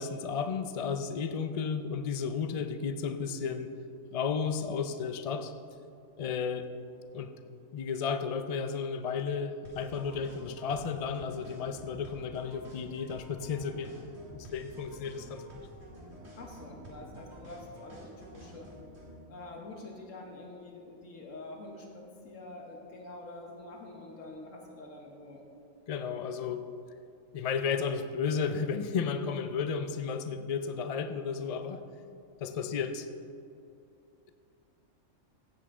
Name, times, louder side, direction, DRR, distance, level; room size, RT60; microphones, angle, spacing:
voice 1, 0.0-3.7 4.1-5.5 6.2-6.7 7.1-7.3 7.7-13.9 14.3-15.6 25.9-26.6 27.3-31.8 32.4-33.1, left 6 dB, 55° left, 8 dB, 0.4 m, -33 dB
sound 1, 9.6-19.2, right 1 dB, 55° right, 2.3 m, -49 dB
voice 2, 16.4-18.7 19.3-25.4, left 2 dB, 75° left, 1 dB, 1.5 m, -46 dB
15.5 x 8.2 x 3.7 m, 2.5 s
omnidirectional pair, 1.3 m